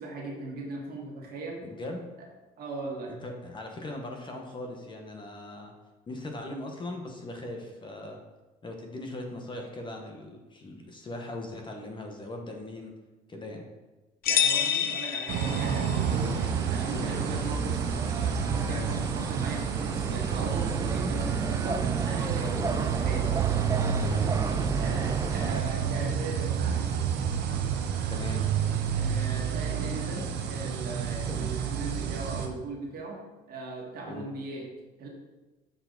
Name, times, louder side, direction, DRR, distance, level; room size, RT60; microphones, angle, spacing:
voice 1, 0.0-1.7 2.6-3.2 14.3-16.4 16.7-23.4 24.8-26.8 28.9-34.7 35.0-35.1, right 3 dB, 65° right, -1 dB, 1.8 m, -38 dB
voice 2, 1.6-2.1 3.1-5.7 6.1-8.2 8.6-12.9 13.3-13.6 16.9-17.4 22.6-22.8 24.0-24.7 28.1-28.4 31.3-31.5 34.0-34.3, left 2 dB, 30° left, 2 dB, 1.1 m, -39 dB
sound 1, 14.2-16.1, left 8 dB, 65° left, 0.6 m, -27 dB
sound 2, 15.3-32.5, right 7 dB, 80° right, 0.8 m, -29 dB
sound 3, 16.1-25.6, right 4 dB, 20° right, 0.4 m, -34 dB
6.8 x 4.7 x 3.9 m, 1.1 s
cardioid pair, 110°, 17 cm